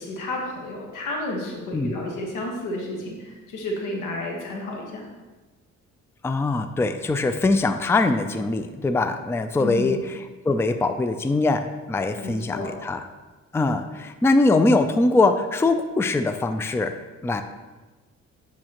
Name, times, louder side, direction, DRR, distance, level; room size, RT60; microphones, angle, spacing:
voice 1, 0.0-5.1 9.6-9.9 12.2-12.8, left 2 dB, 85° left, 0 dB, 1.5 m, -31 dB
voice 2, 6.2-13.0 13.5-16.9 17.2-17.4, left 2 dB, 10° left, 8 dB, 0.4 m, -22 dB
8.6 x 5.7 x 3.0 m, 1.2 s
cardioid pair, 90°, 30 cm